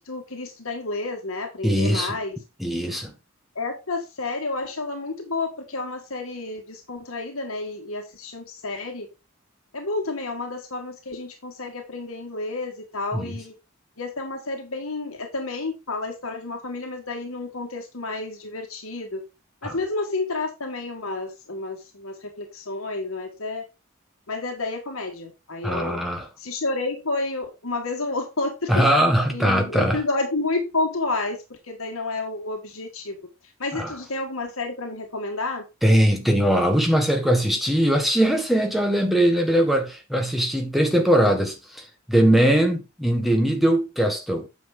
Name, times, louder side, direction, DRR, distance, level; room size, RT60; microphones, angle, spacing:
voice 1, 0.1-2.4 3.5-9.1 9.7-13.5 14.0-19.2 19.6-23.6 24.3-26.0 26.4-28.8 29.3-31.4 31.7-33.2 33.6-35.6, left 3 dB, 80° left, 1.7 m, -30 dB
voice 2, 1.6-2.2 2.6-3.1 13.1-13.4 19.6-19.8 25.6-26.3 28.7-30.0 33.7-33.9 35.8-44.5, right 1 dB, ahead, 1.5 m, -21 dB
9.2 x 6.1 x 3.6 m
head